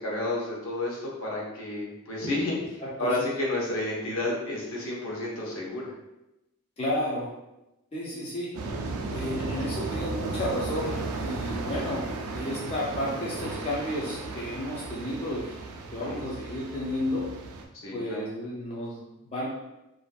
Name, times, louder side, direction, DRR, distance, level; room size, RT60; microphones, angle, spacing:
voice 1, 0.0-5.9 16.0-16.2 17.7-18.2, left 2 dB, 60° left, -4 dB, 0.7 m, -31 dB
voice 2, 2.8-3.2 6.8-7.3 7.9-8.5 9.1-12.1 12.3-17.3 17.9-19.5, left 1 dB, 25° left, -6 dB, 0.4 m, -32 dB
sound 1, 8.5-17.6, right 3 dB, 85° right, 0.4 m, -35 dB
2.5 x 2.4 x 2.2 m, 0.94 s
head